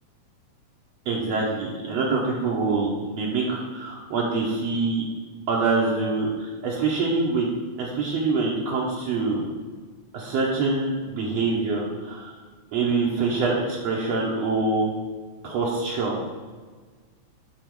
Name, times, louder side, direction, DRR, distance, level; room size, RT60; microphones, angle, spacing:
voice 1, 1.1-5.1 5.5-7.5 7.8-9.5 10.1-12.3 12.7-14.9 15.4-16.2, right 3 dB, 70° right, -3 dB, 1.9 m, -25 dB
9.1 x 4.6 x 4.6 m, 1.4 s
omnidirectional pair, 3.4 m